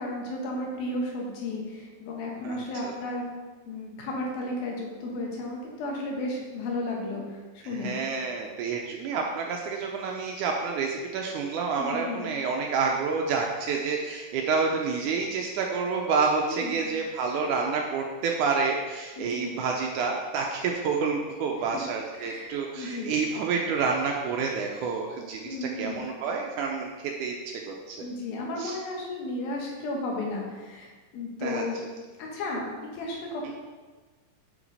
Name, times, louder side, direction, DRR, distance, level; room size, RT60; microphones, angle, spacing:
voice 1, 0.0-3.2 3.7-7.9 11.8-12.3 16.4-16.8 19.2-19.5 21.6-21.8 22.2-23.1 25.4-26.1 28.0-31.8 32.2-33.5, left 2 dB, 85° left, -1 dB, 3.2 m, -34 dB
voice 2, 2.4-2.9 7.6-28.0 28.6-28.8 31.4-31.6 33.4-33.5, right 5 dB, 80° right, 1 dB, 1.8 m, -29 dB
7.0 x 6.0 x 4.0 m, 1.3 s
omnidirectional pair, 4.1 m